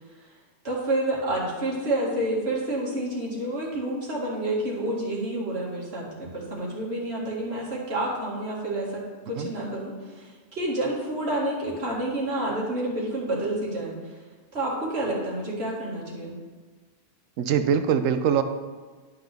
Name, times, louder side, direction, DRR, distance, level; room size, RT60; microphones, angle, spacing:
voice 1, 0.6-13.9 14.5-16.3, right 1 dB, 55° right, -4 dB, 2.3 m, -29 dB
voice 2, 17.4-18.4, right 8 dB, 90° right, 9 dB, 1.0 m, -22 dB
11.5 x 5.6 x 3.5 m, 1.4 s
omnidirectional pair, 1.3 m